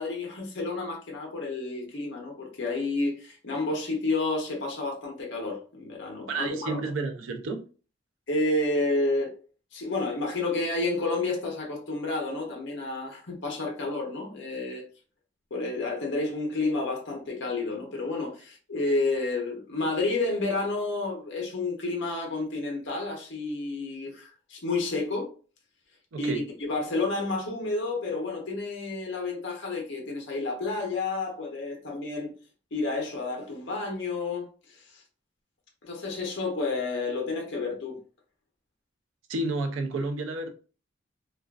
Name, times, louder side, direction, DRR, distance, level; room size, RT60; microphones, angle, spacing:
voice 1, 0.0-6.8 8.3-9.3 9.7-14.9 15.5-25.3 26.2-32.3 32.7-35.0 35.8-38.0, left 3 dB, 70° left, 0.7 m, -30 dB
voice 2, 6.3-7.6 26.1-26.4 39.3-40.5, right 3 dB, 85° right, 0.4 m, -30 dB
2.4 x 2.3 x 2.3 m
head